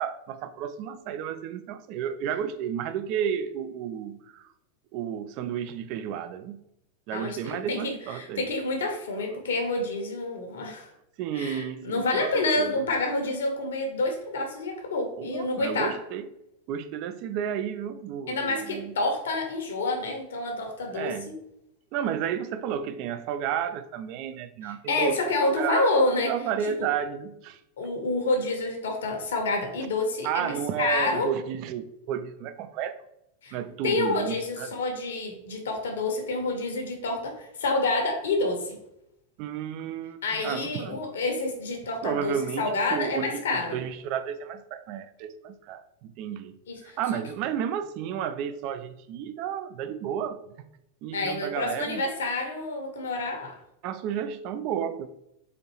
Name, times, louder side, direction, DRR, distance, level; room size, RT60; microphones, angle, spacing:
voice 1, 0.0-4.5 4.9-6.6 7.1-8.5 11.2-12.7 15.2-16.3 16.7-18.9 20.9-21.4 21.9-25.9 26.2-27.6 29.8-29.9 30.2-33.0 33.5-34.7 39.4-41.0 42.0-46.6 46.8-50.4 51.0-52.0 53.8-55.1, right 8 dB, 45° right, 11 dB, 0.3 m, -32 dB
voice 2, 7.1-10.9 11.3-15.9 18.3-21.3 24.6-26.3 26.8-26.9 27.8-31.3 33.4-33.6 33.8-38.8 40.2-43.8 46.7-47.0 51.1-53.5, left 2 dB, 65° left, 3 dB, 0.8 m, -28 dB
4.2 x 2.6 x 2.9 m, 0.81 s
figure-of-eight pair, 90°, 0 cm